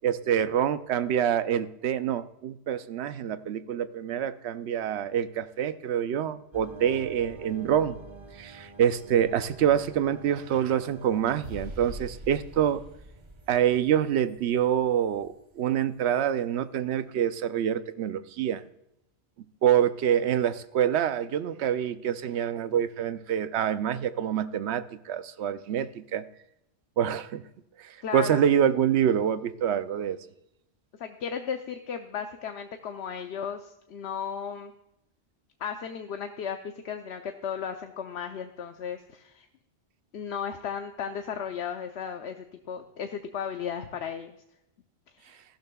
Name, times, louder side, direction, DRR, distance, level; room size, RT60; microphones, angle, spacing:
voice 1, 0.0-8.0 8.4-12.8 13.5-18.6 19.6-26.3 27.0-27.4 27.8-30.2, right 9 dB, 80° right, 13 dB, 0.9 m, -26 dB
sound 1, 6.5-15.9, right 2 dB, 30° right, 0.9 m, -46 dB
voice 2, 28.0-28.5 31.0-34.7 35.6-39.5 40.1-44.4 45.1-45.4, left 7 dB, 80° left, 6 dB, 0.9 m, -35 dB
14.5 x 12.0 x 2.3 m, 0.83 s
omnidirectional pair, 1.1 m